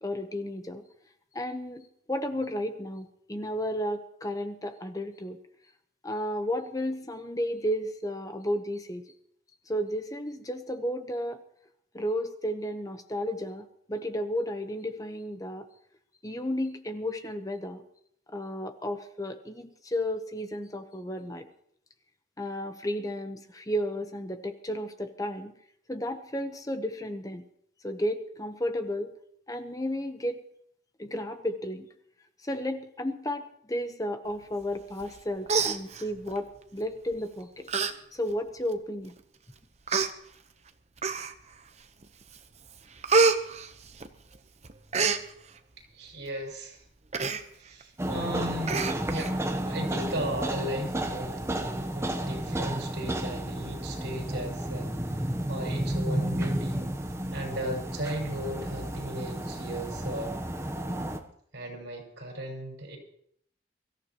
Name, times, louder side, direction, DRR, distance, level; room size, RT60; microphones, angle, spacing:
voice 1, 0.0-0.8 1.3-5.4 6.0-9.0 9.7-11.4 11.9-15.7 16.2-17.8 18.3-21.5 22.4-25.5 25.9-27.4 27.8-29.1 29.5-30.4 31.0-31.9 32.4-37.7 38.1-39.1, equal, 20° left, 8 dB, 0.9 m, -33 dB
Human voice, 35.0-35.2 35.5-36.4 37.1-37.3 37.7-37.9 38.3-38.4 39.2-39.3 39.9-40.1 41.0-41.5 42.0-42.4 42.7-44.4 44.6-45.2 47.1-47.4 47.8-47.9 48.2-48.3 48.7-49.3 49.7-49.8, right 4 dB, 35° right, 0.9 m, -26 dB
voice 2, 45.9-46.8 47.6-48.9 49.1-55.2 55.5-56.9 57.3-60.3 61.5-63.0, right 1 dB, 70° right, 0 dB, 5.9 m, -36 dB
sound 1, 48.0-61.2, right 1 dB, 15° right, 0.9 m, -32 dB
23.5 x 14.5 x 3.0 m, 0.68 s
head